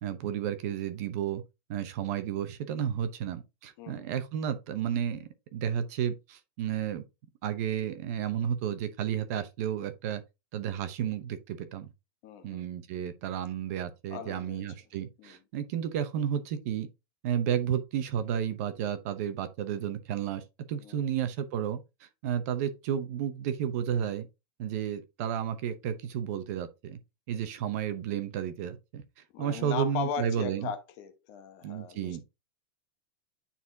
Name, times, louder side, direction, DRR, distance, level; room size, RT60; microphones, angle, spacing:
voice 1, 0.0-1.4 1.7-7.0 7.4-10.2 10.5-11.9 12.4-16.9 17.2-24.3 24.6-27.0 27.3-29.0 29.4-30.7 31.6-32.2, right 9 dB, 40° right, 0.8 m, -32 dB
voice 2, 12.2-12.6 14.1-14.6 15.2-15.3 20.8-21.0 29.3-32.2, left 7 dB, 35° left, 1.0 m, -38 dB
9.6 x 4.2 x 2.7 m
supercardioid pair, 175°, 13 cm